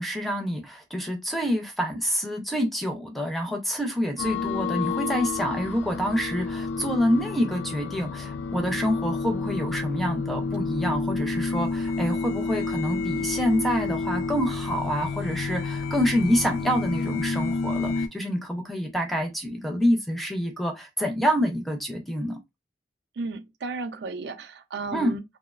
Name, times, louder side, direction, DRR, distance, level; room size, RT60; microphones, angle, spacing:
voice 1, 0.0-22.4 24.9-25.2, equal, ahead, 0.4 m, -27 dB
sound 1, 4.2-18.1, left 4 dB, 85° left, 0.3 m, -30 dB
voice 2, 23.2-25.2, right 3 dB, 65° right, 0.4 m, -34 dB
2.9 x 2.1 x 2.2 m
head